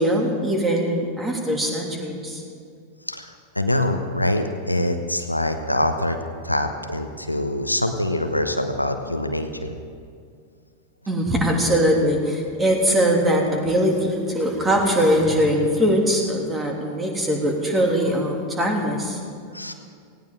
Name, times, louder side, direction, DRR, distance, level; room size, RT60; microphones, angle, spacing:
voice 1, 0.0-2.4 11.1-19.2, equal, 15° right, 1 dB, 2.9 m, -21 dB
voice 2, 3.1-6.2 6.4-9.8 19.5-19.7, left 1 dB, 85° left, 7 dB, 1.0 m, -24 dB
18.5 x 17.0 x 3.8 m, 2.3 s
figure-of-eight pair, 90°, 0 cm